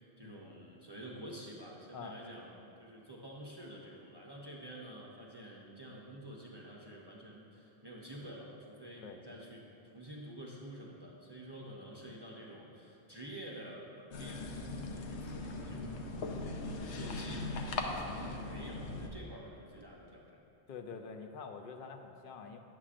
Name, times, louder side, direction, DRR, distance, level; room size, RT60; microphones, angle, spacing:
voice 1, 0.2-9.6 9.9-16.4 16.8-20.4, right 1 dB, 30° right, -4 dB, 0.6 m, -49 dB
sound 1, 14.1-19.1, left 2 dB, 80° left, 0.9 m, -39 dB
voice 2, 20.7-22.6, left 5 dB, 60° left, 6 dB, 0.6 m, -46 dB
9.7 x 7.4 x 2.5 m, 2.7 s
omnidirectional pair, 1.1 m